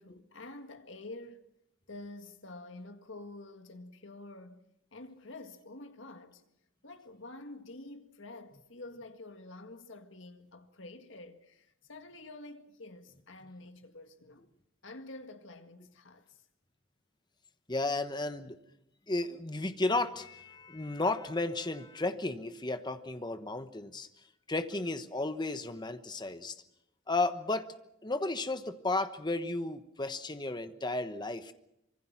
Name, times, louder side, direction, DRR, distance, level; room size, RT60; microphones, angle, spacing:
voice 1, 0.0-1.5 1.9-6.4 6.8-14.5 14.8-16.4, left 2 dB, 70° left, 1.9 m, -48 dB
voice 2, 17.7-18.6 19.1-24.1 24.5-26.6 27.1-27.7 28.0-31.5, left 2 dB, 20° left, 1.1 m, -33 dB
25.5 x 23.0 x 6.0 m
head